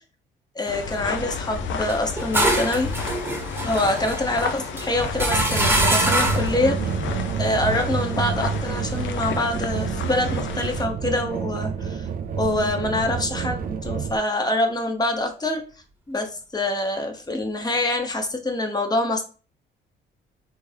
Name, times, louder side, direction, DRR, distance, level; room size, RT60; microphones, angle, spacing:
voice 1, 0.5-2.9 3.6-6.9 7.4-12.1 12.4-15.6 16.1-19.2, left 2 dB, 20° left, 4 dB, 0.9 m, -25 dB
sound 1, 0.7-10.9, left 5 dB, 75° left, 0.6 m, -31 dB
sound 2, 1.9-6.6, right 1 dB, 10° right, 1.0 m, -24 dB
sound 3, 5.3-14.2, right 6 dB, 45° right, 0.4 m, -28 dB
3.4 x 2.5 x 3.3 m, 0.36 s
cardioid pair, 90°, 20 cm